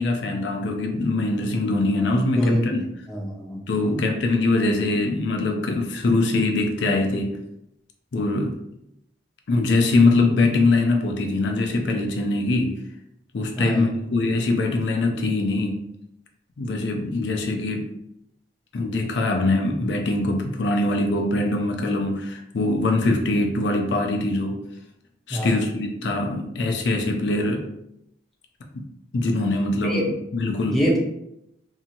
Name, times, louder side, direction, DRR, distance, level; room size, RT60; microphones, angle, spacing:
voice 1, 0.0-2.8 3.7-7.4 8.1-8.6 9.5-12.8 13.3-15.8 16.6-17.9 18.7-24.6 25.3-27.7 28.7-28.8 29.1-30.8, left 2 dB, 65° left, 2 dB, 0.4 m, -23 dB
voice 2, 3.1-4.0 13.6-13.9 25.3-25.6 29.8-30.1 30.7-31.0, equal, ahead, -4 dB, 0.5 m, -24 dB
2.7 x 2.7 x 2.5 m, 0.82 s
head